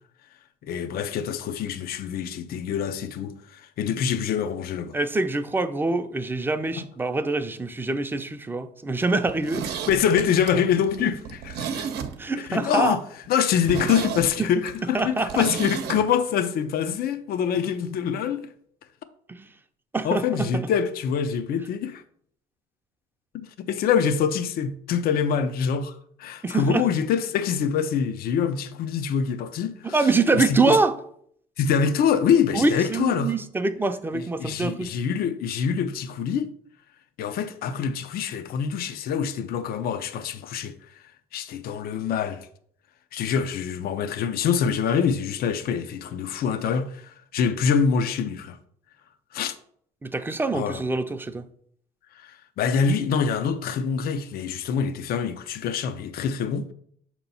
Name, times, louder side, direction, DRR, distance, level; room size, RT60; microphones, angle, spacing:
voice 1, 0.6-5.0 9.9-11.9 12.4-13.0 13.3-18.5 20.0-22.0 23.3-30.0 30.3-30.8 31.6-33.3 34.1-36.5 37.2-40.7 41.3-42.5 43.1-48.6 49.3-49.6 50.5-50.8 52.1-56.7, left 7 dB, 65° left, 0.6 m, -25 dB
voice 2, 4.9-9.7 12.2-13.0 14.9-15.4 19.3-19.5 19.9-20.6 26.4-26.8 29.9-30.9 32.5-34.9 50.0-51.4, right 3 dB, 10° right, 0.5 m, -25 dB
Zipper (clothing), 9.2-12.5 12.8-12.9 13.3-13.4 13.6-16.0 16.3-16.4, right 7 dB, 75° right, 0.7 m, -32 dB
6.7 x 3.0 x 5.4 m
cardioid pair, 110°, 17 cm